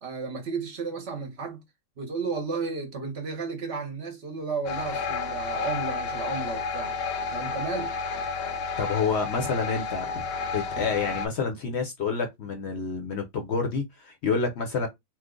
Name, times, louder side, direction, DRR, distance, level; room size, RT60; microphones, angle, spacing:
voice 1, 0.0-1.6 2.0-6.9 7.3-8.0 10.8-10.9, right 4 dB, 55° right, 0.9 m, -33 dB
sound 1, 4.7-11.3, left 4 dB, 90° left, 1.1 m, -31 dB
voice 2, 8.8-10.3 10.5-14.9, left 5 dB, 60° left, 0.8 m, -28 dB
3.1 x 2.0 x 3.6 m
omnidirectional pair, 1.5 m